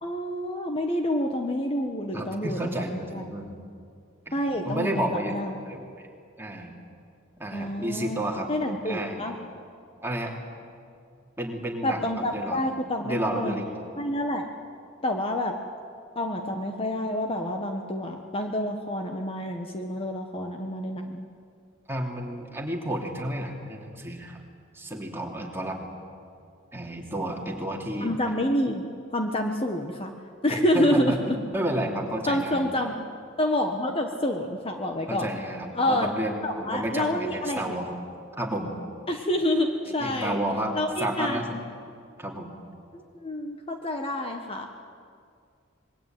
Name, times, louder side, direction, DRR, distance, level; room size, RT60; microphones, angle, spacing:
voice 1, 0.0-3.3 4.3-5.6 7.5-9.4 11.8-13.6 14.0-14.5 15.0-15.5 16.1-21.3 28.0-28.8 29.1-30.1 30.4-31.4 32.3-33.0 33.4-35.3 35.7-36.1 36.4-37.8 39.1-40.4 40.7-41.6 42.9-44.7, left 1 dB, 30° left, 4 dB, 1.4 m, -28 dB
voice 2, 2.1-3.6 4.3-5.4 5.6-5.9 6.4-6.8 7.4-8.5 8.8-9.3 10.0-10.3 11.4-12.1 12.3-12.6 13.0-13.7 21.9-24.4 24.7-25.9 26.7-28.1 30.5-32.6 35.1-37.9 38.4-38.7 40.0-40.7 41.0-41.6 42.2-42.5, right 1 dB, 10° right, 0 dB, 3.0 m, -31 dB
25.5 x 21.5 x 9.2 m, 2.3 s
head